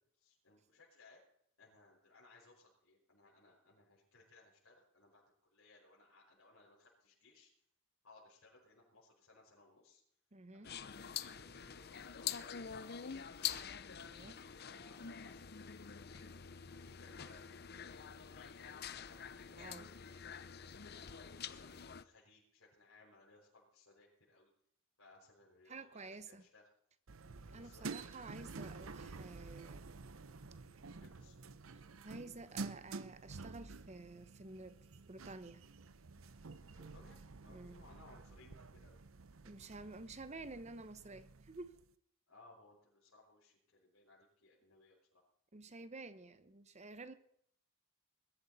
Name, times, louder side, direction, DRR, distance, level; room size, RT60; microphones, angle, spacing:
voice 1, 0.2-1.2 1.6-7.5 8.0-10.0 10.5-13.6 14.2-15.5 16.1-20.2 20.9-24.5 25.0-26.7 27.6-27.8 31.0-31.4 36.7-39.0 42.3-45.2, left 2 dB, 90° left, -7 dB, 5.3 m, -64 dB
voice 2, 10.3-10.7 14.0-14.4 19.5-19.9 25.7-26.4 27.5-29.9 32.0-34.8 35.1-35.6 37.5-37.8 39.4-41.7 45.5-47.1, right 3 dB, 35° right, 13 dB, 0.9 m, -51 dB
sound 1, 10.6-22.0, left 8 dB, 50° left, 0.7 m, -46 dB
sound 2, 27.1-41.9, right 4 dB, 75° right, 0.8 m, -50 dB
21.0 x 12.5 x 4.2 m, 0.68 s
head